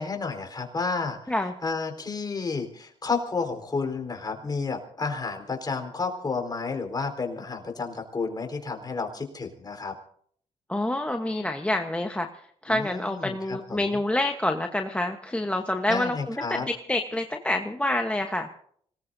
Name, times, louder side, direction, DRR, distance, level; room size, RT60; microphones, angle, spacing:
voice 1, 0.0-1.3 1.6-9.9 12.7-13.9 15.9-16.7, left 4 dB, 30° left, 5 dB, 4.2 m, -31 dB
voice 2, 10.7-12.3 12.6-18.5, left 1 dB, 10° left, 4 dB, 1.1 m, -27 dB
25.5 x 19.0 x 2.7 m, 0.63 s
cardioid pair, 80°, 13 cm